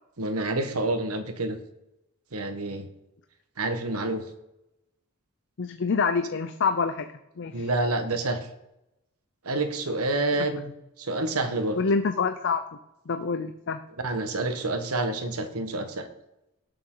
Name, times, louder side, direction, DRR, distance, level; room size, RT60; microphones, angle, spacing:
voice 1, 0.2-1.6 2.3-2.9 3.6-4.2 7.5-8.4 9.4-10.7 11.0-11.8 14.0-16.1, right 2 dB, 85° right, 8 dB, 1.4 m, -28 dB
voice 2, 5.6-7.7 11.8-12.6 13.1-13.8, left 5 dB, 55° left, 8 dB, 0.6 m, -26 dB
17.5 x 6.8 x 3.9 m, 0.90 s
head